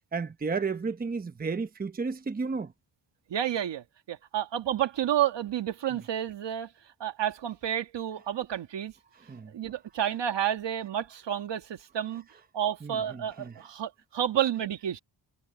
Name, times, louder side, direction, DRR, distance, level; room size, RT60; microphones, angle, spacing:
voice 1, 0.1-2.7 9.3-9.5 12.8-13.5, right 4 dB, 20° right, 0.9 m, -32 dB
voice 2, 3.3-6.7 7.0-8.9 9.5-12.2 12.5-15.0, right 10 dB, 70° right, 2.0 m, -30 dB
wide cardioid pair, 130°, 44 cm